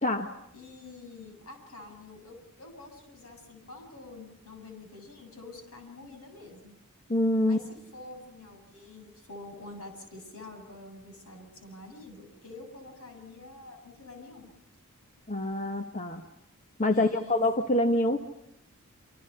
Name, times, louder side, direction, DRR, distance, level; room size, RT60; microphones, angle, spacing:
voice 1, 0.0-0.3 7.1-7.6 15.3-16.2 16.8-18.2, left 1 dB, 35° left, 5 dB, 1.3 m, -26 dB
voice 2, 0.5-6.8 7.4-14.5 16.9-17.4, left 2 dB, 70° left, 4 dB, 7.7 m, -47 dB
27.5 x 27.0 x 5.8 m, 0.82 s
head